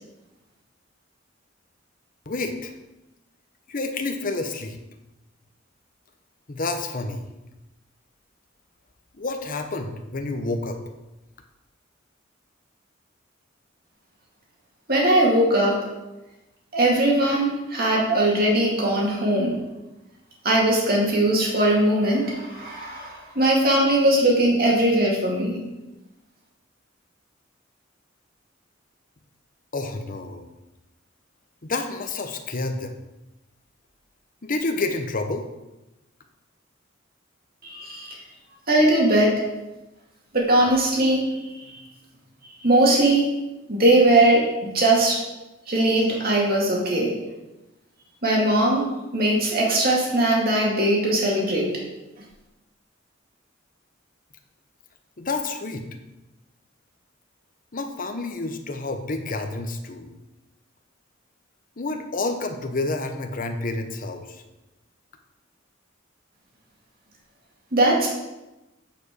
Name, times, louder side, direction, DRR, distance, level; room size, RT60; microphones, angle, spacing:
voice 1, 2.3-2.7 3.7-4.8 6.5-7.2 9.1-10.8 29.7-30.4 31.6-33.0 34.4-35.5 55.2-55.8 57.7-60.1 61.8-64.4, left 3 dB, 45° left, 6 dB, 0.9 m, -29 dB
voice 2, 14.9-15.8 16.7-19.6 20.4-25.6 37.6-38.2 38.7-39.3 40.3-41.3 42.6-43.3 43.7-44.4 44.7-45.2 45.7-47.2 48.2-48.8 49.1-51.7 67.7-68.1, right 1 dB, 50° right, -3 dB, 2.2 m, -20 dB
9.1 x 5.0 x 4.8 m, 1.0 s
head